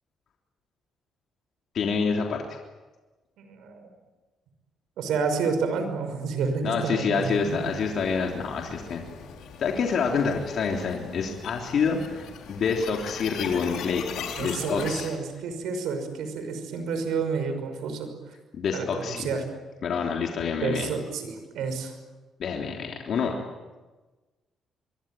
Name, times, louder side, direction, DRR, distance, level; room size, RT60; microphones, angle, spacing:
voice 1, 1.7-2.4 6.6-9.0 9.6-15.1 18.5-19.3 19.8-20.9 22.4-23.4, left 5 dB, 60° left, 1 dB, 3.4 m, -27 dB
voice 2, 3.4-3.9 5.0-7.7 14.3-18.3 18.7-19.4 20.6-21.9, right 5 dB, 80° right, 8 dB, 5.9 m, -30 dB
sound 1, 7.1-15.2, left 7 dB, 80° left, 4.0 m, -40 dB
25.0 x 23.5 x 9.2 m, 1.2 s
cardioid pair, 90°, 0 cm